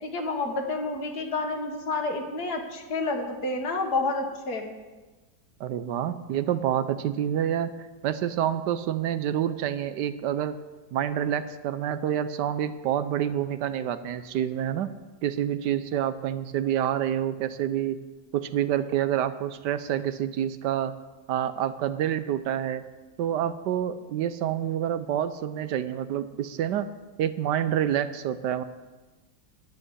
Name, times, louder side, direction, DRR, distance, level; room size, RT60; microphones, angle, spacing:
voice 1, 0.0-4.8, left 3 dB, 65° left, 4 dB, 2.0 m, -29 dB
voice 2, 5.6-7.7 8.0-10.6 10.9-14.9 15.2-18.0 18.3-20.9 21.3-22.8 23.2-26.9 27.2-28.6, right 10 dB, 80° right, 13 dB, 1.3 m, -27 dB
11.0 x 7.8 x 9.7 m, 1.3 s
omnidirectional pair, 1.8 m